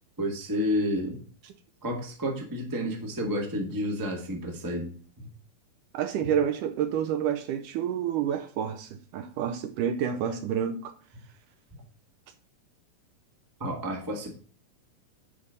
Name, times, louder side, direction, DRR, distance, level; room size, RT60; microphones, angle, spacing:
voice 1, 0.2-1.2 1.8-4.9 5.2-5.3 13.6-14.4, equal, 10° right, 1.0 m, -30 dB
voice 2, 5.9-10.9, right 9 dB, 75° right, 2.1 m, -29 dB
10.0 x 4.4 x 5.2 m
omnidirectional pair, 4.1 m